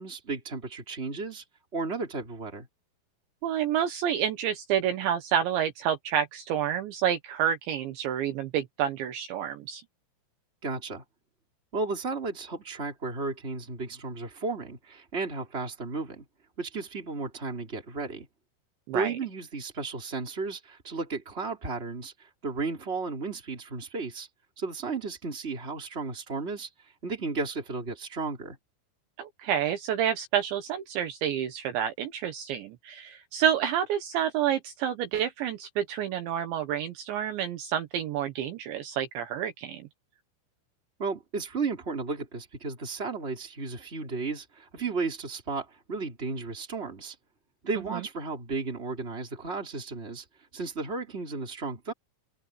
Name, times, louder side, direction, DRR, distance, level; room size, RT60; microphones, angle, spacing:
voice 1, 0.0-1.4 1.7-2.7 10.6-11.0 11.7-16.2 16.6-18.3 18.9-24.3 24.6-26.7 27.0-28.6 41.0-47.1 47.6-50.2 50.5-51.9, right 4 dB, 15° right, 3.4 m, -34 dB
voice 2, 3.4-9.8 18.9-19.2 29.2-39.8 47.9-48.0, right 9 dB, 70° right, 3.4 m, -29 dB
omnidirectional pair, 5.9 m